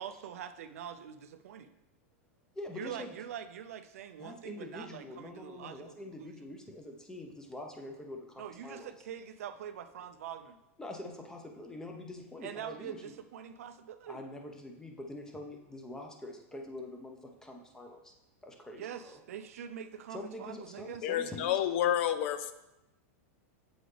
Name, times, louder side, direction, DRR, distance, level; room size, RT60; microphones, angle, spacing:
voice 1, 0.0-1.7 2.7-6.3 8.4-10.6 12.4-14.2 18.8-21.1, right 9 dB, 80° right, 9 dB, 0.5 m, -44 dB
voice 2, 2.5-3.1 4.2-8.9 10.8-13.2 14.1-18.1 18.4-19.2 20.1-21.5, left 1 dB, 10° left, 2 dB, 0.8 m, -45 dB
voice 3, 21.0-22.5, left 11 dB, 60° left, 11 dB, 0.5 m, -29 dB
7.8 x 3.9 x 3.3 m, 0.93 s
supercardioid pair, 135°, 8 cm